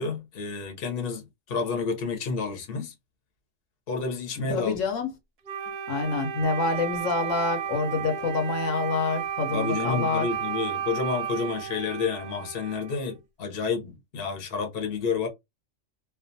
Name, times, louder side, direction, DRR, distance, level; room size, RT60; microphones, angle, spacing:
voice 1, 0.0-2.9 3.9-4.7 9.5-15.3, left 5 dB, 50° left, 0.9 m, -30 dB
voice 2, 4.4-5.1 5.9-10.3, left 3 dB, 75° left, 1.1 m, -27 dB
Wind instrument woodwind instrument, 5.5-13.2, right 8 dB, 60° right, 0.7 m, -33 dB
2.4 x 2.3 x 2.6 m
omnidirectional pair, 1.3 m